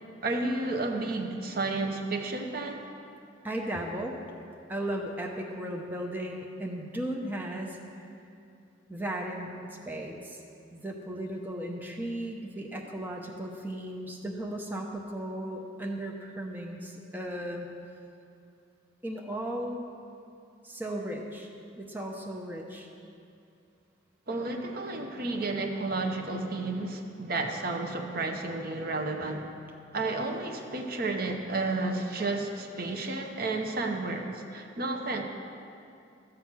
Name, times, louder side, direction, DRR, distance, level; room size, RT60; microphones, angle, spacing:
voice 1, 0.2-2.9 24.3-29.5 29.9-35.2, right 2 dB, 50° right, 3 dB, 0.9 m, -32 dB
voice 2, 3.4-4.2 4.7-7.8 8.9-10.4 10.7-17.7 19.0-19.8 20.6-21.5 21.8-22.9, right 1 dB, 10° right, 0 dB, 0.8 m, -36 dB
14.0 x 7.4 x 6.2 m, 2.5 s
head